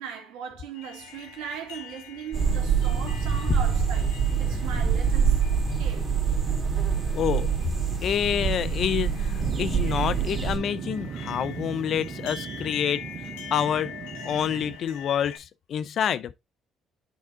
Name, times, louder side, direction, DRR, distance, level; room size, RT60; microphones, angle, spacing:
voice 1, 0.0-4.1 4.4-6.1, right 7 dB, 80° right, 2.0 m, -39 dB
sound 1, 0.7-15.4, left 7 dB, 85° left, 1.2 m, -44 dB
sound 2, 2.3-10.6, right 6 dB, 35° right, 2.4 m, -25 dB
voice 2, 7.1-7.5 8.0-13.0 13.5-13.9 14.2-16.3, left 9 dB, 60° left, 0.5 m, -27 dB
sound 3, 9.4-14.8, right 7 dB, 55° right, 0.6 m, -37 dB
8.3 x 3.6 x 3.6 m
hypercardioid pair, 60°, 0 cm